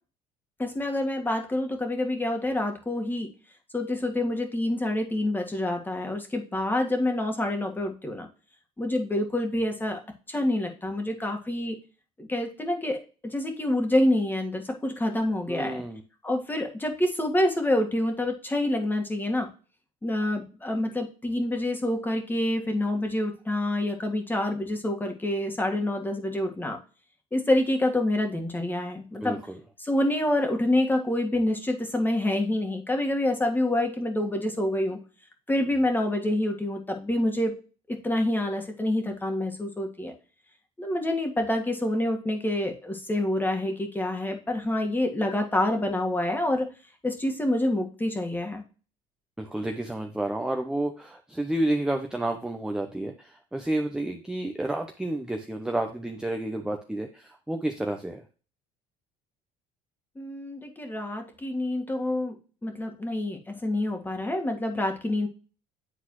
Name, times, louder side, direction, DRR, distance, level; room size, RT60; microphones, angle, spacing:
voice 1, 0.6-3.3 3.7-8.3 8.8-10.0 10.3-11.8 12.2-15.8 16.2-19.5 20.0-26.8 27.3-29.4 29.8-35.0 35.5-37.5 37.9-40.1 40.8-46.7 47.0-48.6 60.2-62.4 62.6-65.3, left 1 dB, 15° left, 3 dB, 1.8 m, -27 dB
voice 2, 15.5-16.0 29.2-29.6 49.4-58.2, right 1 dB, 5° right, 4 dB, 0.8 m, -30 dB
9.7 x 3.9 x 3.1 m, 0.36 s
supercardioid pair, 100°, 15 cm